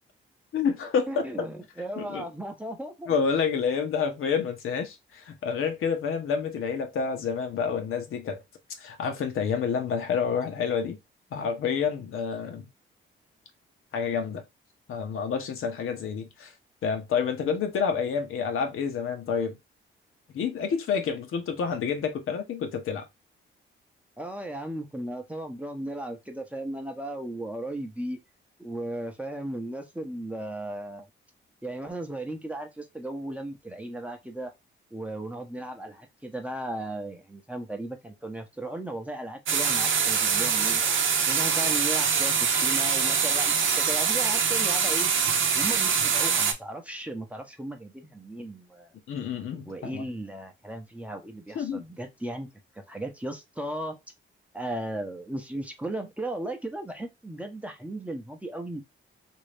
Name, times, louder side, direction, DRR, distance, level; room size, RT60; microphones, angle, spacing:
voice 1, 0.5-1.5 2.0-2.2 3.1-8.4 8.8-11.0 11.3-12.7 13.9-14.4 14.9-16.5 16.8-19.6 20.3-23.1 49.1-50.0 51.5-51.8, left 6 dB, 75° left, 0.9 m, -28 dB
voice 2, 1.1-3.2 24.2-28.2 28.6-31.1 31.6-34.5 34.9-40.8 41.3-45.1 45.5-48.9 49.6-54.0 54.5-58.8, right 1 dB, 5° right, 0.7 m, -36 dB
sound 1, 39.5-46.5, right 6 dB, 70° right, 0.7 m, -24 dB
3.0 x 2.7 x 3.2 m
cardioid pair, 110°, 21 cm